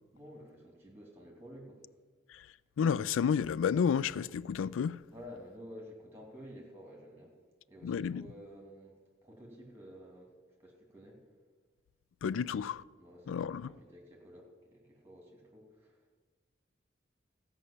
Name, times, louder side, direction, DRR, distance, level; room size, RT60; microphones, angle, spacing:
voice 1, 0.1-1.8 5.1-7.3 7.7-9.0 9.2-10.3 10.6-11.2 12.9-16.1, equal, 10° right, 2.6 m, -51 dB
voice 2, 2.8-5.0 7.8-8.3 12.2-12.8 13.3-13.7, left 7 dB, 85° left, 0.3 m, -31 dB
14.5 x 5.4 x 8.6 m
head